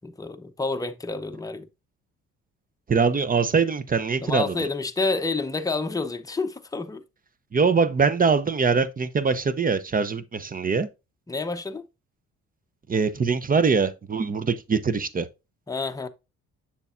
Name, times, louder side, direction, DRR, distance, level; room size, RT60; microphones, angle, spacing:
voice 1, 0.0-1.7 4.2-7.0 11.3-11.9 15.7-16.1, left 3 dB, 10° left, 0.8 m, -29 dB
voice 2, 2.9-4.5 7.5-10.9 12.9-15.3, right 5 dB, 30° right, 0.7 m, -23 dB
7.2 x 6.8 x 2.5 m
cardioid pair, 90°, 30 cm